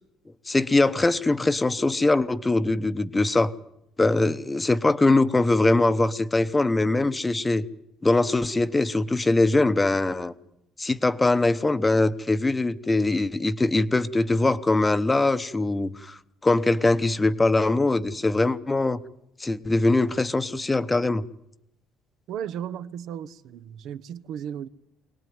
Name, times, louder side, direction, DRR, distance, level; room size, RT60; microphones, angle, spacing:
voice 1, 0.5-3.5 4.0-7.6 8.0-10.3 10.8-19.0 19.4-21.2, left 2 dB, 15° left, 0.9 m, -22 dB
voice 2, 22.3-24.7, right 9 dB, 65° right, 0.9 m, -35 dB
23.5 x 18.5 x 9.4 m
cardioid pair, 135°, 0 cm